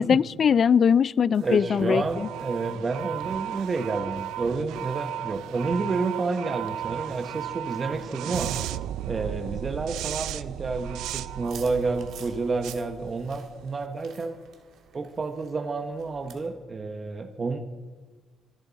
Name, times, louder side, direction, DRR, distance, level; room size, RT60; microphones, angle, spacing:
voice 1, 0.0-2.3, left 7 dB, 50° left, 0.3 m, -21 dB
sound 1, 1.3-13.7, right 12 dB, 90° right, 0.4 m, -35 dB
voice 2, 1.4-8.5 9.1-14.4 14.9-17.6, right 3 dB, 35° right, 1.1 m, -30 dB
sound 2, 11.4-16.5, right 7 dB, 75° right, 2.0 m, -50 dB
26.0 x 10.5 x 4.2 m
cardioid pair, 90°, 0 cm